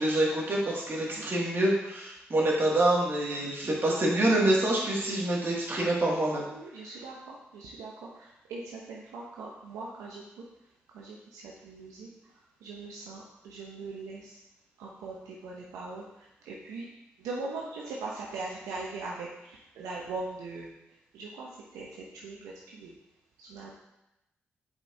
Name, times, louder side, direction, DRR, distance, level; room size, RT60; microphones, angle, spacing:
voice 1, 0.0-6.4, right 1 dB, 45° right, -4 dB, 2.1 m, -26 dB
voice 2, 4.9-5.3 6.5-10.4 10.9-12.3 12.6-14.4 14.8-16.9 17.2-20.7 21.1-22.9 23.4-23.8, right 3 dB, 85° right, -3 dB, 0.7 m, -41 dB
7.2 x 5.0 x 2.7 m, 0.89 s
hypercardioid pair, 40°, 5 cm